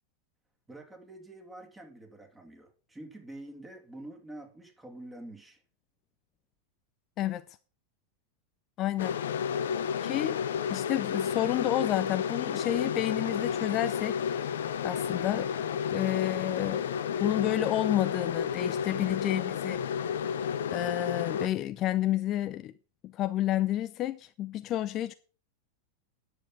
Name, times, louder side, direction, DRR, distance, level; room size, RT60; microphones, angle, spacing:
voice 1, 0.7-5.6, right 1 dB, 10° right, 2.9 m, -47 dB
voice 2, 8.8-9.2 10.0-10.4 10.7-14.2 14.8-15.5 15.9-19.8 20.7-22.7 23.1-25.1, left 13 dB, 35° left, 0.5 m, -30 dB
sound 1, 9.0-21.5, left 7 dB, 60° left, 0.8 m, -31 dB
10.0 x 7.7 x 6.0 m
figure-of-eight pair, 90°, 0 cm